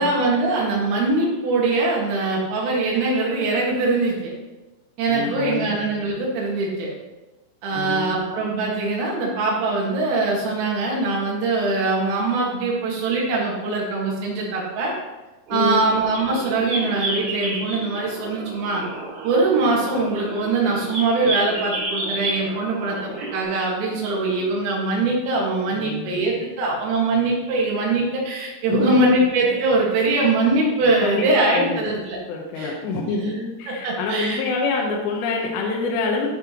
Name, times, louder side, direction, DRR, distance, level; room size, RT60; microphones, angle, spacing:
voice 1, 0.0-4.3 5.0-6.9 7.6-14.9 15.5-18.8 19.2-32.2 32.6-32.7 33.7-34.4, right 2 dB, 75° right, -3 dB, 4.4 m, -22 dB
voice 2, 5.1-5.8 7.7-8.3 15.5-15.8 25.7-26.2 28.7-29.0 30.9-31.3 31.5-32.0 32.3-36.3, left 4 dB, 75° left, -1 dB, 2.7 m, -26 dB
sound 1, 15.5-23.4, right 2 dB, 45° right, 3.2 m, -31 dB
13.0 x 5.4 x 3.0 m, 1.1 s
omnidirectional pair, 5.9 m